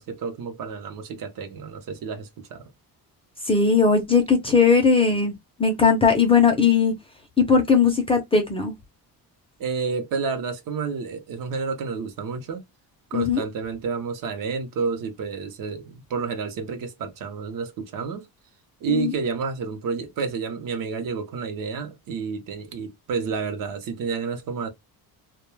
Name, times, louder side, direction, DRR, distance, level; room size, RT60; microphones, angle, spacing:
voice 1, 0.0-2.6 9.6-12.6 13.1-18.3 18.8-24.7, right 5 dB, 55° right, 0.7 m, -30 dB
voice 2, 3.4-5.3 5.6-6.9 7.4-8.7 13.1-13.4 18.9-19.1, left 5 dB, 15° left, 0.5 m, -19 dB
2.2 x 2.2 x 3.0 m
cardioid pair, 160°, 39 cm